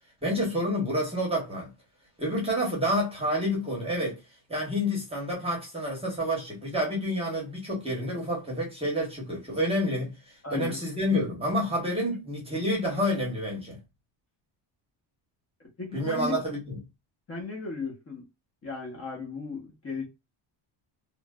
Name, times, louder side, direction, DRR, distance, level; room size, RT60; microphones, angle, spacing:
voice 1, 0.2-1.7 2.2-4.2 4.5-13.8 15.9-16.8, equal, 10° right, 0.9 m, -29 dB
voice 2, 10.4-10.8 15.8-16.4 17.3-18.3 18.6-20.0, left 3 dB, 30° left, 0.9 m, -35 dB
3.1 x 2.1 x 2.2 m
cardioid pair, 180°, 47 cm